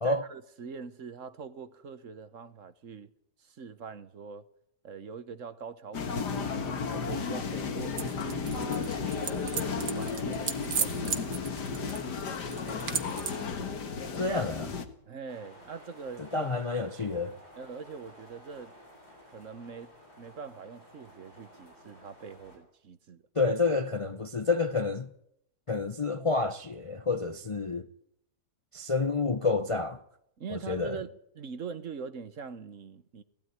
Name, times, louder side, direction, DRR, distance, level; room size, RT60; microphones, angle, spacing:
voice 1, 0.0-3.1 3.4-4.5 4.8-8.8 9.4-11.5 15.1-16.6 17.6-18.8 19.3-23.2 30.4-33.2, right 5 dB, 55° right, 1.4 m, -43 dB
sound 1, 5.9-14.8, left 5 dB, 90° left, 2.2 m, -33 dB
sound 2, 8.0-13.5, right 7 dB, 85° right, 2.0 m, -37 dB
voice 2, 14.2-14.7 16.2-17.4 23.4-25.1 25.7-27.9 28.7-30.0 30.5-31.0, left 3 dB, 30° left, 0.6 m, -29 dB
sound 3, 15.3-22.6, left 1 dB, 70° left, 8.5 m, -54 dB
17.0 x 16.5 x 9.8 m
omnidirectional pair, 1.7 m